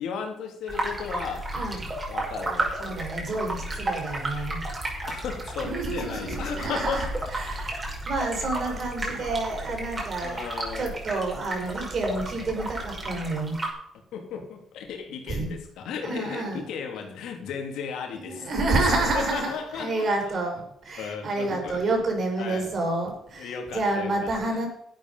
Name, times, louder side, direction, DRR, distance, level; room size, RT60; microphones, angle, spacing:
voice 1, 0.0-1.5 2.1-3.8 5.0-7.2 8.4-8.7 9.1-9.3 10.2-11.0 14.1-20.1 21.0-21.8 22.4-22.7 23.4-24.6, left 6 dB, 85° left, 3 dB, 3.1 m, -35 dB
sound 1, 0.7-13.7, right 1 dB, 30° right, 5.7 m, -33 dB
voice 2, 1.5-1.9 2.8-4.6 5.6-10.4 10.8-13.6 15.3-15.5 16.0-16.7 18.3-24.7, right 2 dB, 50° right, 3 dB, 5.4 m, -29 dB
12.5 x 9.1 x 5.6 m, 0.73 s
cardioid pair, 90°, 0 cm